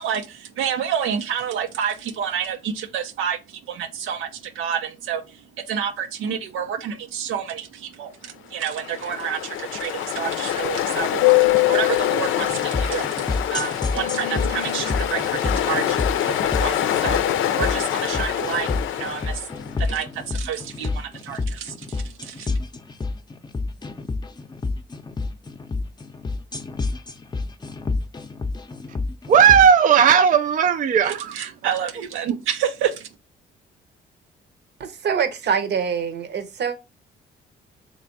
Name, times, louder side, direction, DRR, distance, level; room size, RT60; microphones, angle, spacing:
voice 1, 0.0-19.5 19.8-22.5 31.0-33.1, right 8 dB, 90° right, 0.7 m, -29 dB
Ocean, 8.6-19.7, left 12 dB, 80° left, 0.5 m, -24 dB
sound 1, 12.5-29.7, left 3 dB, 20° left, 0.6 m, -29 dB
voice 2, 29.3-31.3, right 7 dB, 40° right, 0.4 m, -15 dB
voice 3, 34.8-36.8, right 7 dB, 60° right, 0.9 m, -24 dB
3.3 x 3.2 x 4.0 m
cardioid pair, 90°, 20 cm